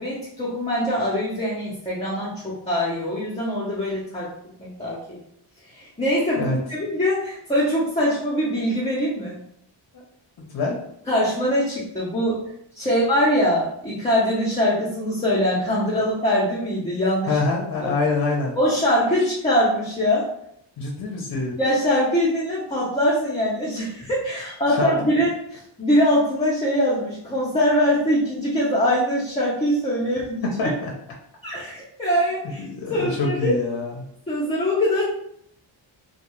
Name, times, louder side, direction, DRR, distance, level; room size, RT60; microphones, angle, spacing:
voice 1, 0.0-4.3 4.6-5.2 5.7-9.4 11.1-12.4 12.7-17.3 17.8-17.9 18.6-20.3 21.6-30.7 31.4-32.6 32.9-33.6 34.3-35.0, equal, 15° left, -7 dB, 0.6 m, -23 dB
voice 2, 10.4-10.8 12.9-13.0 17.3-18.6 20.8-21.6 24.7-24.9 30.6-30.9 32.6-34.0, left 3 dB, 50° left, -1 dB, 0.6 m, -25 dB
2.3 x 2.3 x 3.0 m, 0.72 s
cardioid pair, 95°, 48 cm